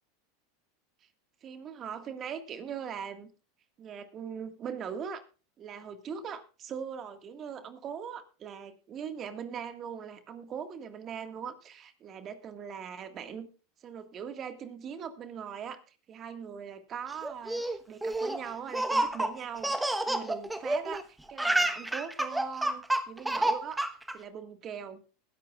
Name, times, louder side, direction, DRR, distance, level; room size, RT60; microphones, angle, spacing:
voice 1, 1.4-3.3 3.8-5.2 5.6-13.5 13.8-23.8 24.1-25.0, right 7 dB, 35° right, 8 dB, 1.8 m, -41 dB
Laughter, 17.2-21.0 21.3-24.1, right 1 dB, 5° right, 1.1 m, -29 dB
21.0 x 11.0 x 2.4 m, 0.34 s
hypercardioid pair, 110°, 0 cm